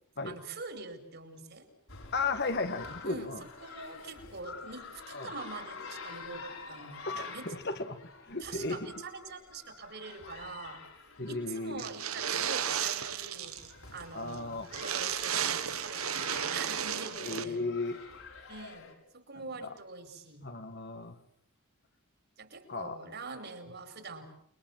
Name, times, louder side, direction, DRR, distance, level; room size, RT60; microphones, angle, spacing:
voice 1, 0.2-1.7 3.0-3.3 3.6-7.0 7.3-7.5 8.4-10.8 11.2-13.6 13.9-17.6 18.5-20.5 22.4-24.2, right 3 dB, 50° right, 8 dB, 5.1 m, -44 dB
sound 1, 1.9-18.9, left 4 dB, 70° left, 5.9 m, -48 dB
voice 2, 2.1-3.4 5.1-5.3 7.1-8.9 11.2-11.8 14.1-14.7 17.2-18.0 20.4-21.2 22.7-23.0, left 3 dB, 50° left, 8 dB, 2.0 m, -35 dB
sound 2, 11.8-13.7 14.0-14.1 14.3-14.4 14.7-17.4, right 8 dB, 90° right, 1.8 m, -33 dB
29.5 x 22.5 x 7.8 m, 0.66 s
head